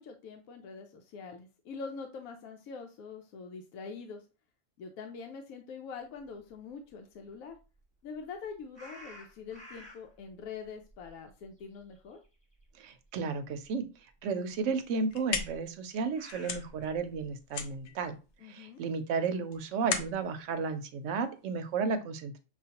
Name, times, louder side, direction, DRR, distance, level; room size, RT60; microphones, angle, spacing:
voice 1, 0.0-4.2 4.8-7.6 8.0-12.2 18.4-18.8, left 5 dB, 85° left, 4 dB, 1.0 m, -44 dB
sound 1, 8.8-10.2 10.6-12.3 12.6-12.8 13.6-13.7 15.5-17.3, left 1 dB, 5° left, 1.3 m, -51 dB
voice 2, 12.8-13.9 14.2-18.2 18.5-22.4, right 5 dB, 70° right, 8 dB, 0.9 m, -33 dB
sound 2, 14.8-21.7, left 6 dB, 65° left, 0.9 m, -39 dB
6.2 x 2.4 x 2.8 m, 0.32 s
omnidirectional pair, 1.4 m